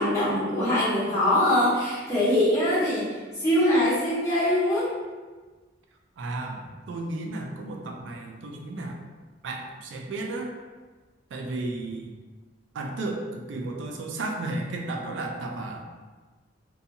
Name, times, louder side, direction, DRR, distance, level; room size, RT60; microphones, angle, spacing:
voice 1, 0.0-3.1 3.4-4.9, left 1 dB, 15° left, -12 dB, 1.2 m, -23 dB
voice 2, 6.2-9.0 9.4-10.5 11.3-12.1 12.7-15.9, right 2 dB, 90° right, 2 dB, 0.4 m, -33 dB
2.6 x 2.3 x 2.6 m, 1.3 s
head